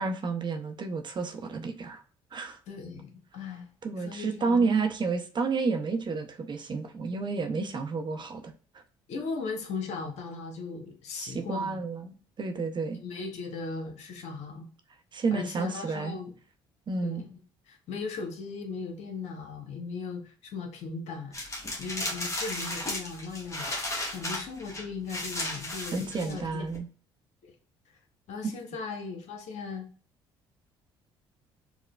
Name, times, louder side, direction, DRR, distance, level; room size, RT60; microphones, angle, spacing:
voice 1, 0.0-2.0 2.3-2.6 3.8-8.5 11.2-13.0 15.1-16.1 16.9-17.2 25.9-26.9, right 4 dB, 40° right, 6 dB, 0.6 m, -30 dB
voice 2, 2.7-3.7 4.0-4.7 9.1-11.8 12.9-14.7 15.3-16.3 17.0-17.3 17.7-21.3 21.8-26.6 27.4-27.5 28.3-29.9, left 4 dB, 65° left, 4 dB, 0.9 m, -38 dB
sound 1, 21.3-26.8, left 1 dB, 25° left, 1.2 m, -35 dB
4.7 x 2.1 x 2.3 m, 0.39 s
hypercardioid pair, 60°, 12 cm